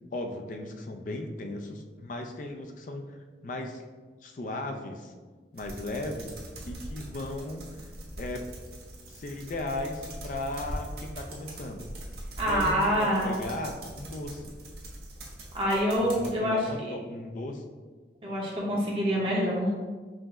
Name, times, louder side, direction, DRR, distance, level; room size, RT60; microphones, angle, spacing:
voice 1, 0.1-3.2 3.4-3.9 4.2-5.1 5.5-6.4 6.6-7.9 8.2-8.5 9.1-11.9 12.4-14.5 16.0-17.6, left 2 dB, 45° left, 4 dB, 0.4 m, -36 dB
sound 1, 5.6-16.3, right 1 dB, 60° right, 0.8 m, -42 dB
voice 2, 12.4-13.3 15.5-16.9 18.2-19.7, equal, 30° right, -5 dB, 0.7 m, -26 dB
4.9 x 2.0 x 3.6 m, 1.4 s
head